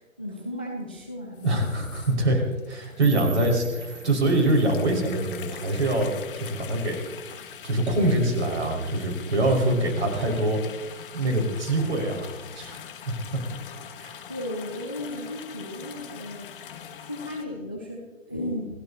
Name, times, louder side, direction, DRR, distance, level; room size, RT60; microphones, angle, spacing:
voice 1, 0.0-1.6 14.3-16.5 17.0-18.8, left 1 dB, 10° left, 1 dB, 0.4 m, -35 dB
sound 1, 1.3-17.5, left 8 dB, 40° left, 1.7 m, -43 dB
voice 2, 1.4-10.6 10.8-13.4 14.0-14.1, right 1 dB, 55° right, 2 dB, 5.7 m, -25 dB
sound 2, 3.0-6.0, right 8 dB, 20° right, 2.0 m, -44 dB
28.0 x 15.0 x 2.9 m, 1.2 s
figure-of-eight pair, 130°, 41 cm